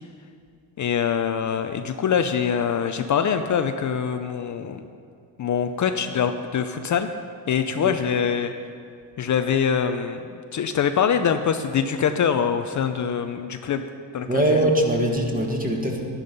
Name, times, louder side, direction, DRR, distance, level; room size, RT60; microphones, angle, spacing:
voice 1, 0.8-4.8 5.4-7.1 7.5-8.5 9.2-13.9 14.1-14.4, left 7 dB, 40° left, 8 dB, 0.6 m, -24 dB
voice 2, 14.3-16.1, right 1 dB, 20° right, 1 dB, 1.7 m, -22 dB
11.0 x 10.5 x 5.3 m, 2.3 s
cardioid pair, 110°, 44 cm